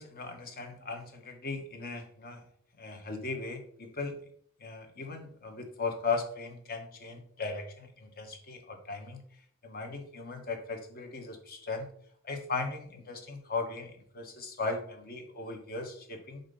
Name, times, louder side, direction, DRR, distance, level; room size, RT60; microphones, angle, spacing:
voice 1, 0.0-2.4 2.8-4.2 4.6-9.2 9.6-11.9 12.2-16.4, left 3 dB, 45° left, 4 dB, 1.2 m, -37 dB
7.0 x 2.8 x 5.5 m, 0.62 s
head